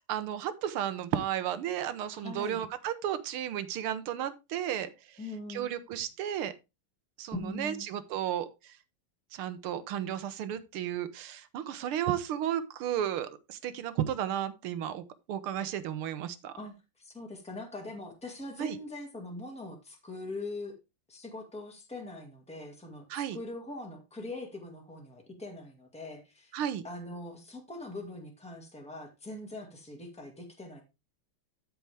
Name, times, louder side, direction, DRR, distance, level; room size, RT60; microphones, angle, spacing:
voice 1, 0.1-5.2 5.5-6.5 7.2-8.7 9.3-16.5 18.6-18.8 23.1-23.4 26.5-26.8, right 10 dB, 85° right, 13 dB, 1.7 m, -33 dB
voice 2, 2.2-2.6 5.2-5.7 7.3-7.9 16.6-20.8 21.1-26.6 26.8-30.8, left 2 dB, 5° left, 1 dB, 1.9 m, -42 dB
13.5 x 4.7 x 3.4 m, 0.25 s
omnidirectional pair, 2.3 m